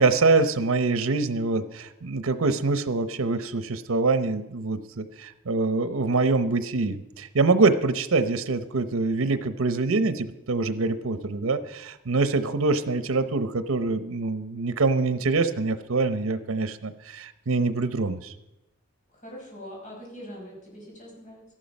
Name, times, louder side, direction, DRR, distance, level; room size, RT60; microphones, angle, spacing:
voice 1, 0.0-18.3, right 3 dB, 90° right, 12 dB, 0.8 m, -25 dB
voice 2, 19.1-21.4, equal, 40° left, -2 dB, 5.3 m, -42 dB
13.5 x 11.5 x 5.3 m, 0.93 s
head